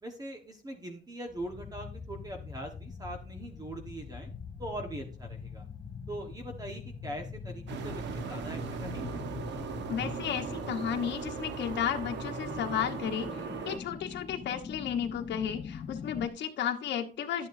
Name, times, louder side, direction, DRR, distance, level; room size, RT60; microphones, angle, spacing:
voice 1, 0.0-4.3 4.6-5.7 6.1-9.2, right 1 dB, 20° right, 4 dB, 1.3 m, -41 dB
sound 1, 1.3-16.3, left 5 dB, 30° left, 0.5 m, -43 dB
sound 2, 7.7-13.8, right 6 dB, 80° right, 1.2 m, -38 dB
voice 2, 9.9-13.3 13.6-17.5, left 9 dB, 85° left, 4 dB, 1.2 m, -33 dB
11.5 x 9.2 x 2.7 m, 0.37 s
cardioid pair, 160°, 18 cm